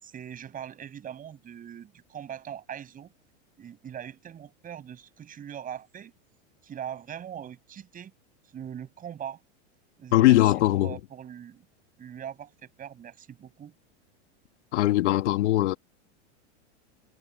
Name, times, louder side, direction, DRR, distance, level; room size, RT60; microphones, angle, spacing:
voice 1, 0.0-3.1 3.6-6.1 6.6-8.1 8.5-9.4 10.0-11.6 12.0-13.7, right 9 dB, 25° right, 6.6 m, -41 dB
voice 2, 10.1-10.9 14.7-15.7, left 16 dB, 75° left, 1.7 m, -20 dB
supercardioid pair, 145°, 35 cm